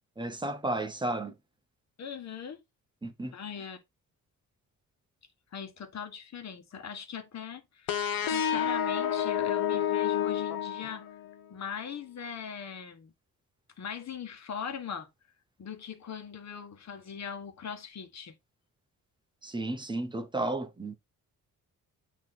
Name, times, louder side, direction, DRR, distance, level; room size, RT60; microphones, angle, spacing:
voice 1, 0.2-1.3 3.0-3.3 19.4-21.0, right 2 dB, 15° right, 0.9 m, -33 dB
voice 2, 2.0-2.6 3.3-3.8 5.5-11.0 11.5-13.1 13.8-15.1 15.6-18.4, left 7 dB, 55° left, 1.4 m, -40 dB
sound 1, 7.9-11.4, left 9 dB, 90° left, 1.1 m, -29 dB
8.8 x 3.2 x 4.2 m
cardioid pair, 135°, 34 cm